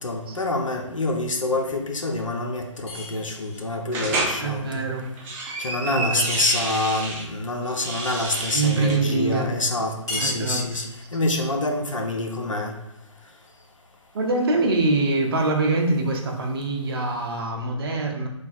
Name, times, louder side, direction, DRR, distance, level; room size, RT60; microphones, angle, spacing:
voice 1, 0.0-4.9 5.6-10.9 11.1-12.8, left 2 dB, 80° left, 3 dB, 0.6 m, -26 dB
sound 1, 2.9-3.7 6.3-7.1 10.1-11.0, left 2 dB, 60° left, 1.5 m, -36 dB
sound 2, 3.9-4.4 5.0-7.2 7.7-9.0, right 3 dB, 10° right, 0.4 m, -29 dB
voice 2, 4.4-5.0 5.9-6.2 8.5-9.5 10.1-10.6 14.1-18.3, right 3 dB, 50° right, 2 dB, 0.7 m, -24 dB
3.2 x 2.3 x 4.1 m, 0.86 s
figure-of-eight pair, 135°, 16 cm